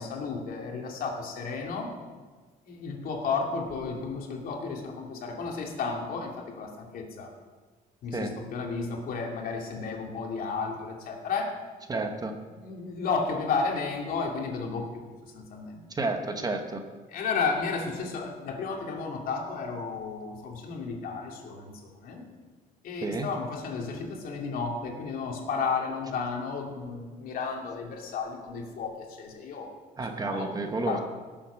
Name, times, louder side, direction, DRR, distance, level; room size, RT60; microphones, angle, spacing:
voice 1, 0.0-1.9 2.6-7.3 8.0-11.6 12.5-15.0 15.3-15.8 17.1-21.7 22.0-22.2 22.8-29.7 30.3-30.5 30.9-31.0, left 4 dB, 60° left, 0 dB, 2.7 m, -33 dB
voice 2, 11.9-12.3 15.9-16.8 23.0-23.3 30.0-31.0, right 3 dB, 25° right, 6 dB, 1.1 m, -30 dB
17.5 x 7.7 x 6.3 m, 1.4 s
cardioid pair, 145°, 16 cm